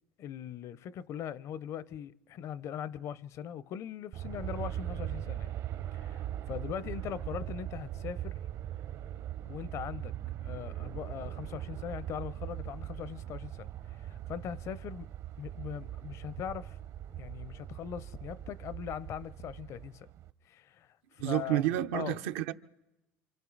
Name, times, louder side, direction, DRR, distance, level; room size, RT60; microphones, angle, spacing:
voice 1, 0.2-5.5 5.9-8.4 9.4-10.1 10.4-13.7 14.0-15.1 15.4-16.8 17.1-20.1 20.4-22.2, left 9 dB, 45° left, 0.6 m, -41 dB
Aircraft, 4.1-20.3, right 12 dB, 50° right, 0.8 m, -40 dB
voice 2, 21.2-22.5, right 13 dB, 80° right, 0.8 m, -30 dB
27.5 x 25.0 x 4.0 m
supercardioid pair, 110°, 7 cm